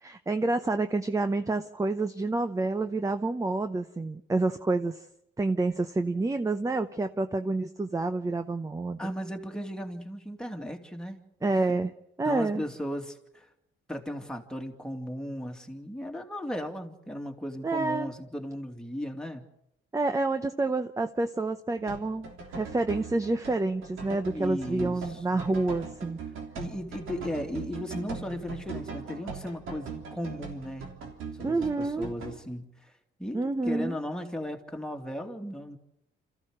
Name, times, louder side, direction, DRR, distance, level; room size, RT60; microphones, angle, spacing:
voice 1, 0.0-5.0 5.4-9.1 11.4-11.9 12.2-12.6 17.6-18.1 19.9-26.2 31.4-32.1 33.3-34.0, right 2 dB, 15° right, 9 dB, 0.8 m, -28 dB
voice 2, 9.0-11.6 12.2-13.5 13.9-19.4 24.3-25.5 26.6-31.1 31.4-32.9 33.2-35.8, equal, 5° left, 2 dB, 2.5 m, -36 dB
sound 1, 21.8-32.4, right 5 dB, 85° right, 3.4 m, -40 dB
27.5 x 14.5 x 6.5 m, 0.81 s
cardioid pair, 90°, 20 cm